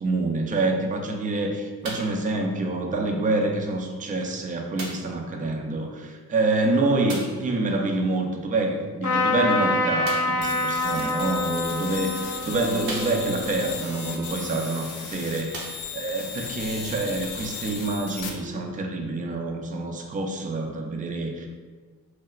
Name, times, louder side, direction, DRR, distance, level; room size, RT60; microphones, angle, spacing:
voice 1, 0.0-21.5, right 2 dB, 20° right, 2 dB, 0.3 m, -27 dB
sound 1, 1.8-2.2 3.1-3.2 4.8-5.2 7.1-7.5 10.0-10.5 11.4-11.5 12.1-12.2 12.8-13.5 14.8-14.9 15.4-16.2 17.0-17.1, right 2 dB, 75° right, 0.7 m, -36 dB
Trumpet, 9.0-14.5, left 2 dB, 40° left, 0.8 m, -27 dB
sound 2, 10.4-18.3, left 6 dB, 70° left, 0.5 m, -36 dB
2.9 x 2.1 x 2.3 m, 1.4 s
hypercardioid pair, 45°, 45 cm